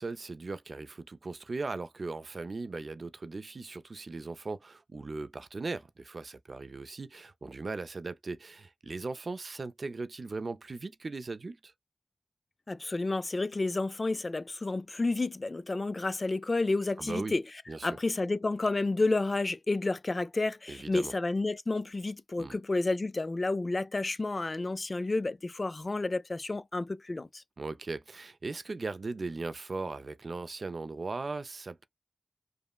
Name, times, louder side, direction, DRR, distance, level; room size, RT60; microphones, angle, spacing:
voice 1, 0.0-11.7 17.0-17.4 17.7-18.0 20.7-21.1 22.4-22.6 27.6-31.9, right 3 dB, 60° right, 0.4 m, -38 dB
voice 2, 12.7-17.4 17.8-27.4, left 2 dB, 40° left, 0.3 m, -30 dB
5.2 x 2.0 x 2.2 m
wide cardioid pair, 80°, 0 cm